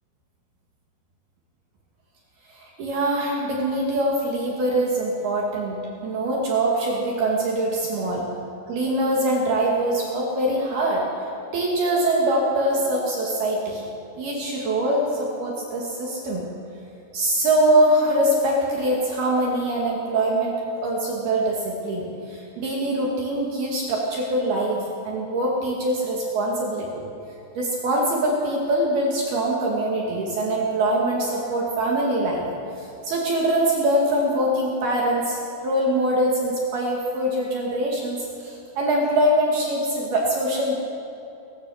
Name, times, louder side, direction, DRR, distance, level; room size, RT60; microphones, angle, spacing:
voice 1, 2.5-8.2 8.7-11.1 11.5-13.8 14.2-16.4 17.1-20.5 20.8-27.1 27.6-32.5 32.8-40.8, right 1 dB, 55° right, -2 dB, 3.7 m, -23 dB
27.0 x 16.0 x 6.4 m, 3.0 s
omnidirectional pair, 5.8 m